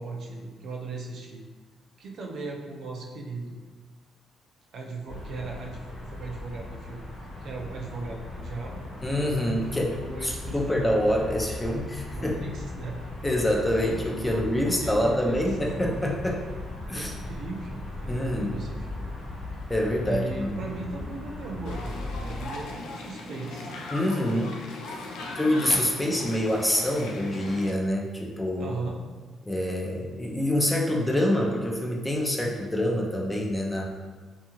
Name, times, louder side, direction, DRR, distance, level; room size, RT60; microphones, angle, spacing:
voice 1, 0.0-1.4 2.0-3.6 4.7-7.0 7.4-8.8 9.7-11.0 12.1-13.0 14.2-15.6 16.9-19.2 20.0-23.8 28.6-29.0, right 3 dB, 65° right, 0 dB, 0.4 m, -38 dB
sound 1, 5.1-22.5, left 2 dB, 65° left, 1.0 m, -38 dB
voice 2, 9.0-9.9 10.2-12.5 13.2-16.4 16.9-17.1 18.1-18.6 19.7-20.6 23.9-24.6 25.4-28.7 29.4-33.8, left 1 dB, 15° left, -1 dB, 0.4 m, -26 dB
sound 2, 21.6-27.7, left 2 dB, 90° left, 0.4 m, -39 dB
2.7 x 2.3 x 2.8 m, 1.4 s
cardioid pair, 90°, 0 cm